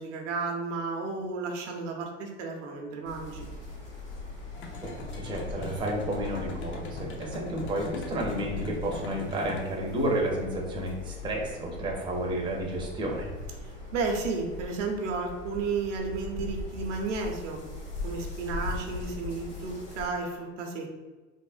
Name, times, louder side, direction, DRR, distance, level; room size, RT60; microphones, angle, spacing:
voice 1, 0.0-3.4 13.6-17.6 18.0-20.9, right 4 dB, 75° right, 2 dB, 0.7 m, -33 dB
sound 1, 3.0-20.1, left 2 dB, 90° left, 1.5 m, -40 dB
sound 2, 4.5-9.6, left 2 dB, 35° left, 0.5 m, -41 dB
voice 2, 4.8-13.4, right 1 dB, 15° right, -1 dB, 0.5 m, -31 dB
3.4 x 2.1 x 2.4 m, 1.3 s
hypercardioid pair, 90°, 37 cm